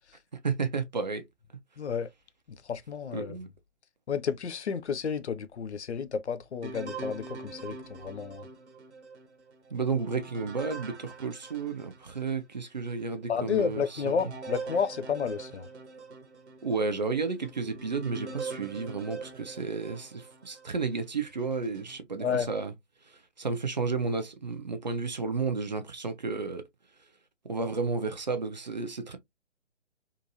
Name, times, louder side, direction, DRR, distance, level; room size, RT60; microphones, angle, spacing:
voice 1, 0.4-1.2 3.1-3.5 9.7-14.2 16.6-22.7 23.4-26.6 27.4-29.2, right 4 dB, 35° right, 0.4 m, -32 dB
voice 2, 1.8-2.1 2.6-3.4 4.1-8.5 13.3-15.7 22.2-22.5, left 6 dB, 65° left, 0.5 m, -31 dB
sound 1, 6.6-12.4 12.9-13.0 13.6-20.8 21.4-22.0, right 4 dB, 60° right, 0.8 m, -43 dB
2.7 x 2.5 x 2.6 m
figure-of-eight pair, 135°, 37 cm